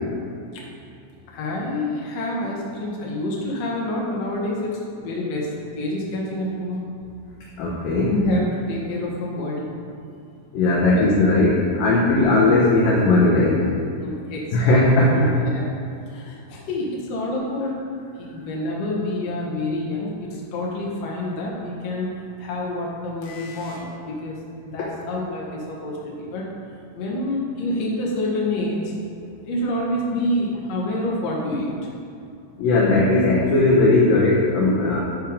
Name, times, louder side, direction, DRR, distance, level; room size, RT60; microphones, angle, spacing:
voice 1, 1.3-5.5 5.8-6.8 8.1-9.6 11.0-11.1 12.0-12.1 14.0-14.7 15.1-15.7 16.1-17.7 18.2-22.1 22.4-24.3 24.6-26.4 27.0-28.9 29.5-31.7, left 1 dB, 60° left, -4 dB, 1.8 m, -27 dB
voice 2, 7.6-8.1 10.5-13.7 14.5-15.4 32.6-35.0, left 2 dB, 75° left, -4 dB, 2.1 m, -18 dB
12.5 x 4.6 x 5.1 m, 2.6 s
omnidirectional pair, 5.2 m